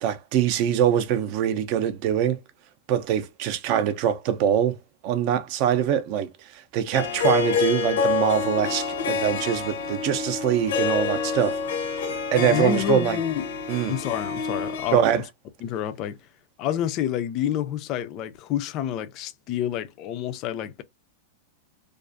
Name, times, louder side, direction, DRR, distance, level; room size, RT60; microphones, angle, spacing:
voice 1, 0.0-2.4 2.9-4.8 5.0-11.6 12.3-13.2 13.7-13.9 14.9-15.2, right 9 dB, 40° right, 0.4 m, -23 dB
Harp, 6.9-14.9, left 5 dB, 80° left, 0.6 m, -27 dB
voice 2, 12.4-13.5 13.9-15.1 15.6-16.2 16.6-20.8, left 10 dB, 35° left, 0.3 m, -28 dB
2.4 x 2.3 x 2.5 m
supercardioid pair, 160°, 0 cm